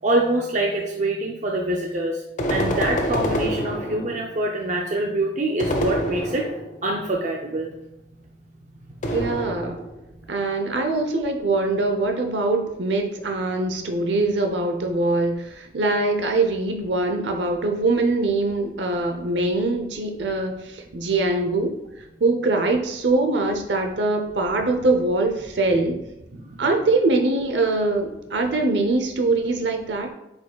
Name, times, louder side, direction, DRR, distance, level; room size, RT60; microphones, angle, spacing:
voice 1, 0.0-7.7 26.3-26.6, right 1 dB, 45° right, 0 dB, 0.5 m, -25 dB
sound 1, 2.4-4.3 5.6-6.8 9.0-10.0, equal, 45° left, 0.9 m, -26 dB
voice 2, 9.1-9.8 10.3-26.0 26.6-30.1, right 2 dB, 85° right, 4 dB, 0.7 m, -23 dB
8.1 x 5.3 x 2.3 m, 0.92 s
head